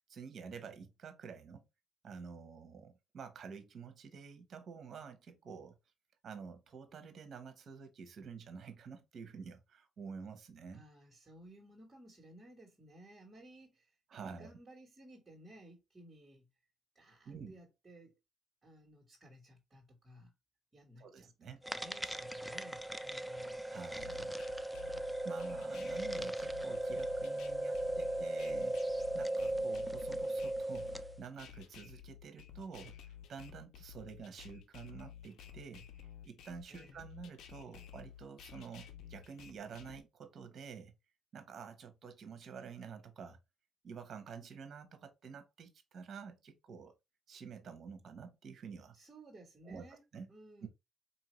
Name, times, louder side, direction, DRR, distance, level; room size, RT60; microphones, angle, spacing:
voice 1, 0.1-1.6 2.0-5.8 6.2-10.8 14.1-14.5 17.2-17.6 21.0-21.6 23.7-24.4 25.2-28.8 29.1-40.9 41.3-43.4 43.8-47.0 47.3-48.9 49.6-49.8 50.1-50.3 50.6-50.7, right 6 dB, 55° right, 1.0 m, -49 dB
voice 2, 10.7-14.0 14.3-16.5 16.9-18.2 18.6-20.3 20.7-23.6 36.7-37.0 48.9-50.0 50.3-50.7, right 1 dB, 25° right, 1.5 m, -57 dB
sound 1, 21.6-31.2, right 1 dB, ahead, 0.3 m, -37 dB
sound 2, 24.0-40.0, left 9 dB, 80° left, 0.6 m, -53 dB
4.2 x 2.7 x 3.0 m
cardioid pair, 90°, 0 cm